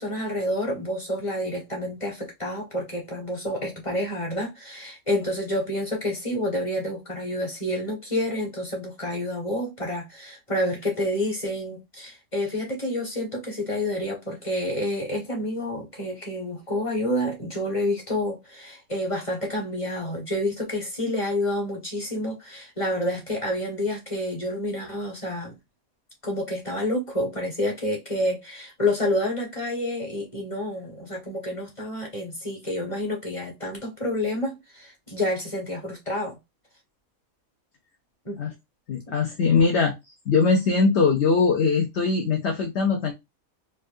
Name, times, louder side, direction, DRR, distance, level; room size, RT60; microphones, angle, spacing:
voice 1, 0.0-25.5 26.2-36.4 38.3-38.4 39.1-39.2, left 1 dB, 20° left, 1.6 m, -29 dB
voice 2, 38.9-39.9 40.3-43.1, left 4 dB, 55° left, 0.9 m, -21 dB
4.4 x 2.5 x 2.6 m
omnidirectional pair, 1.5 m